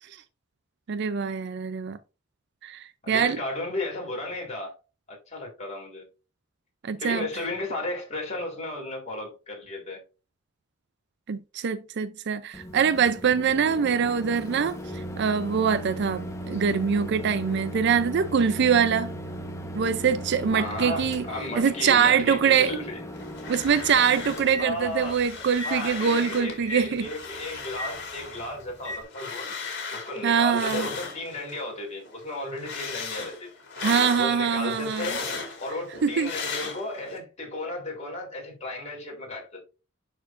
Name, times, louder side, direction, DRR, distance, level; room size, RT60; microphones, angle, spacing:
voice 1, 0.9-2.0 2.6-3.4 6.8-7.3 11.3-19.1 19.7-21.2 21.6-22.7 23.5-27.1 30.2-30.9 33.8-35.1 36.0-36.3, right 7 dB, 55° right, 0.4 m, -24 dB
voice 2, 3.0-4.8 5.3-6.0 7.0-10.0 13.8-13.9 20.5-23.0 24.6-25.2 25.6-29.5 29.9-33.5 34.2-39.6, left 2 dB, 35° left, 3.6 m, -34 dB
Microwave oven, 12.5-29.0, equal, 15° left, 1.1 m, -38 dB
sound 1, 23.1-24.5 24.8-26.6 26.9-31.7 32.0-37.2, left 4 dB, 60° left, 2.8 m, -37 dB
11.0 x 4.5 x 2.5 m
head